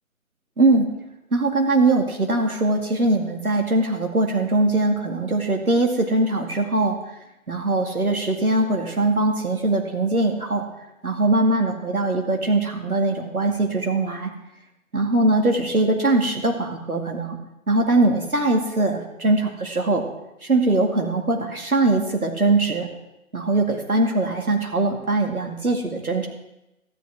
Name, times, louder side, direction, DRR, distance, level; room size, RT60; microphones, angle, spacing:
voice 1, 0.6-0.9 1.3-7.0 7.5-10.7 11.0-14.3 14.9-17.4 17.7-20.1 20.4-22.9 23.3-26.3, right 2 dB, 90° right, 2 dB, 2.2 m, -21 dB
13.0 x 10.5 x 4.7 m, 0.93 s
figure-of-eight pair, 145°, 42 cm